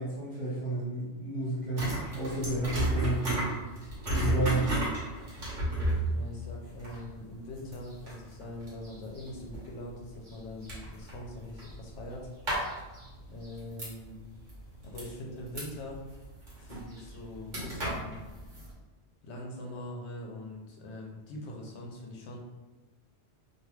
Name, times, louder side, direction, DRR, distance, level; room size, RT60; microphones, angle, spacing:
voice 1, 0.0-3.5 4.1-4.7, right 2 dB, 30° left, -11 dB, 1.0 m, -32 dB
sound 1, 1.8-14.2 14.5-18.7, right 1 dB, 45° right, 1.1 m, -33 dB
voice 2, 6.0-12.3 13.3-14.2 14.8-16.0 16.6-18.1 19.2-22.4, left 1 dB, 80° left, -1 dB, 0.9 m, -42 dB
2.5 x 2.3 x 3.1 m, 1.1 s
omnidirectional pair, 1.2 m